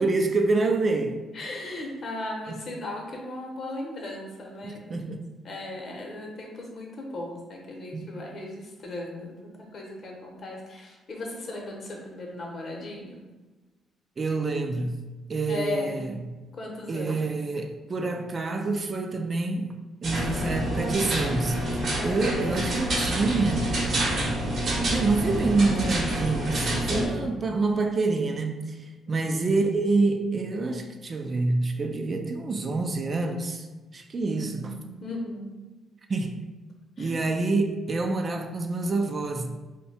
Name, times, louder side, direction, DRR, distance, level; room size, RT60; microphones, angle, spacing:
voice 1, 0.0-1.2 2.5-2.6 4.6-5.2 7.9-8.0 14.2-15.0 15.3-16.2 16.9-19.7 20.0-23.7 24.9-34.7 36.1-36.5 37.0-39.5, right 3 dB, 40° right, 0.3 m, -27 dB
voice 2, 1.3-5.0 5.4-13.3 15.5-16.0 16.5-17.3 20.3-20.6 22.0-22.6 26.9-27.3 29.1-29.3 34.3-35.5 37.0-37.1, left 2 dB, 50° left, 0.8 m, -37 dB
sound 1, 20.0-27.1, right 1 dB, 55° right, 0.8 m, -27 dB
2.7 x 2.1 x 4.0 m
cardioid pair, 90°, 0 cm